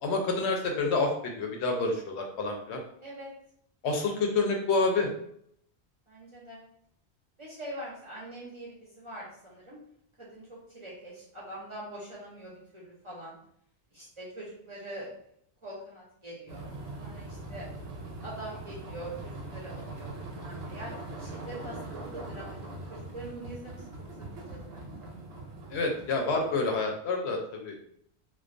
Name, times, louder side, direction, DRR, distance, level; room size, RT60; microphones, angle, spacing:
voice 1, 0.0-2.8 3.8-5.1 25.7-27.8, left 3 dB, 80° left, 2 dB, 0.8 m, -28 dB
voice 2, 6.1-6.6 7.4-9.8 10.2-13.4 13.9-15.1 15.6-16.7 17.0-17.7 18.2-22.6 22.9-23.9 24.3-25.1, right 1 dB, 35° right, -6 dB, 0.5 m, -43 dB
sound 1, 16.5-26.9, right 2 dB, 70° right, 0.8 m, -42 dB
2.3 x 2.1 x 2.5 m, 0.69 s
omnidirectional pair, 1.1 m